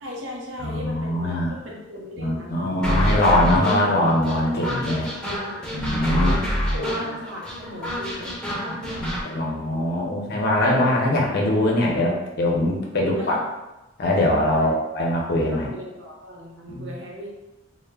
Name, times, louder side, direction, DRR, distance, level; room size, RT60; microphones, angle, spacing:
voice 1, 0.0-2.7 5.2-6.4 6.7-9.1 9.3-9.9 12.9-13.4 14.5-14.7 15.5-17.3, left 1 dB, 65° right, -2 dB, 0.6 m, -38 dB
voice 2, 0.6-1.5 2.2-5.1 5.7-6.5 8.8-13.3 14.0-15.7 16.7-16.9, left 1 dB, 55° left, -2 dB, 0.5 m, -22 dB
sound 1, 2.8-9.2, equal, 5° left, 0.6 m, -26 dB
2.1 x 2.1 x 3.3 m, 1.0 s
head